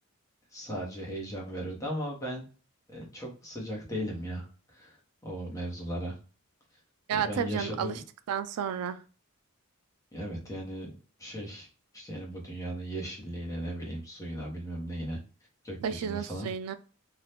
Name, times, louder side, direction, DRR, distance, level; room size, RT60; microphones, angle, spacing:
voice 1, 0.5-2.4 2.9-5.0 5.2-6.2 7.1-8.0 10.1-11.7 11.9-15.2 15.6-16.5, equal, 15° left, -2 dB, 0.9 m, -37 dB
voice 2, 7.1-7.9 8.3-9.0 15.8-16.7, right 7 dB, 80° right, 11 dB, 0.3 m, -31 dB
2.8 x 2.3 x 3.3 m, 0.37 s
head